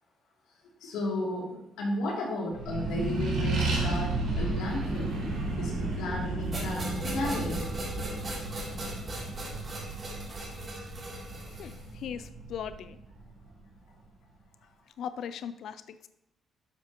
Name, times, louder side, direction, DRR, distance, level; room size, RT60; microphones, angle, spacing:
voice 1, 0.8-5.2 5.6-7.6, left 1 dB, 90° left, -3 dB, 2.8 m, -33 dB
Accelerating revving vroom, 2.5-13.4, right 2 dB, 80° right, 3.0 m, -33 dB
sound 1, 6.5-11.9, right 1 dB, 40° right, 3.1 m, -40 dB
voice 2, 11.6-13.0 15.0-16.1, left 8 dB, 75° left, 13 dB, 0.4 m, -39 dB
11.0 x 7.6 x 3.0 m, 0.82 s
cardioid pair, 90°, 0 cm